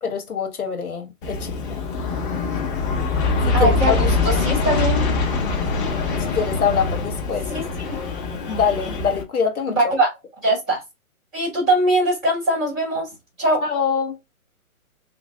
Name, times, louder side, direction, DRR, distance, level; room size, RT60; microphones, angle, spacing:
voice 1, 0.0-1.8 3.5-4.0 4.2-4.4 6.2-7.5 8.5-9.9 13.6-14.2, left 6 dB, 80° left, 1.4 m, -24 dB
Aircraft, 1.2-9.2, left 4 dB, 35° left, 1.1 m, -23 dB
voice 2, 3.5-5.0 7.5-8.0 9.7-10.1 10.4-10.8 11.3-13.1 13.4-13.6, right 1 dB, ahead, 0.4 m, -21 dB
3.0 x 2.6 x 3.4 m
hypercardioid pair, 140°, 43 cm